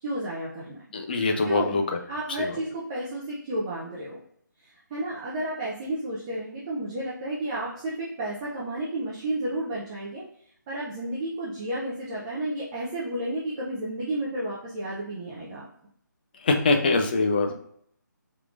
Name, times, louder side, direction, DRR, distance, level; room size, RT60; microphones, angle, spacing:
voice 1, 0.0-0.8 1.4-1.8 2.1-4.2 4.9-10.2 10.7-15.7, right 1 dB, 15° right, -6 dB, 0.6 m, -32 dB
voice 2, 0.9-1.8 16.5-17.5, left 3 dB, 30° left, 4 dB, 0.5 m, -23 dB
4.5 x 3.7 x 2.5 m, 0.67 s
figure-of-eight pair, 165°, 11 cm